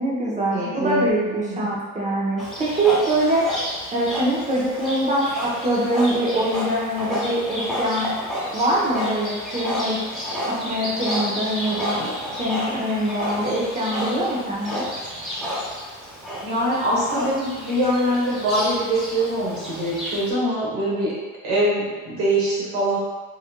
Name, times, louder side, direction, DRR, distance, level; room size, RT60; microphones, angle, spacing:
voice 1, 0.0-3.5 3.9-8.1 8.5-10.0 10.5-12.0 12.4-14.9, right 1 dB, 20° right, -5 dB, 0.8 m, -23 dB
voice 2, 0.5-1.7 16.4-21.2 21.4-23.0, right 1 dB, 90° right, -6 dB, 1.3 m, -23 dB
Livestock farm animals working animals, 2.4-20.3, equal, ahead, 1.3 m, -31 dB
3.8 x 2.5 x 2.2 m, 1.3 s
supercardioid pair, 85°, 34 cm